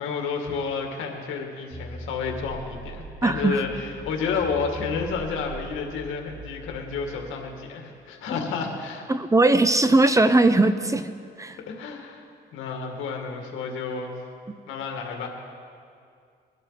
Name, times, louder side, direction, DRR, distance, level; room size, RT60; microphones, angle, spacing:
voice 1, 0.0-9.1 11.7-12.2 12.5-14.1 14.7-15.3, left 5 dB, 85° left, 2 dB, 2.1 m, -30 dB
sound 1, 1.7-7.2, right 2 dB, 65° right, 4.6 m, -41 dB
voice 2, 3.2-3.6 9.1-11.1 11.4-11.6 14.5-14.6, right 2 dB, 15° right, 11 dB, 0.7 m, -19 dB
21.5 x 12.0 x 4.1 m, 2.3 s
cardioid pair, 90°, 20 cm